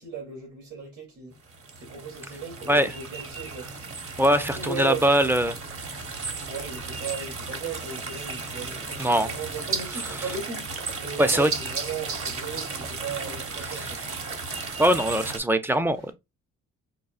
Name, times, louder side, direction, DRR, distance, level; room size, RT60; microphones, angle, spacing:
voice 1, 0.0-1.3 1.8-3.7 4.2-5.3 6.2-10.6 11.0-14.0 15.9-16.0, right 5 dB, 70° right, 2.6 m, -37 dB
sound 1, 1.5-15.4, right 4 dB, 45° right, 1.1 m, -35 dB
voice 2, 4.2-5.6 9.0-9.3 10.0-10.2 11.2-11.5 14.8-16.1, equal, 5° right, 0.4 m, -22 dB
5.5 x 2.3 x 2.4 m
cardioid pair, 90°, 30 cm